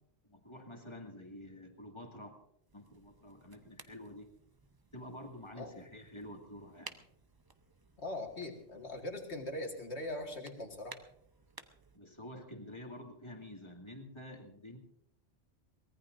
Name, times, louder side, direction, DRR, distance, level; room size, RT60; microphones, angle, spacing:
voice 1, 0.3-2.4 2.7-4.3 4.9-7.0 11.9-14.8, left 1 dB, 20° left, 2 dB, 2.2 m, -49 dB
sound 1, 2.7-12.0, right 3 dB, 25° right, 0.6 m, -57 dB
voice 2, 8.0-11.0, left 1 dB, 60° left, 2 dB, 2.3 m, -41 dB
23.5 x 19.0 x 2.6 m, 0.72 s
omnidirectional pair, 1.3 m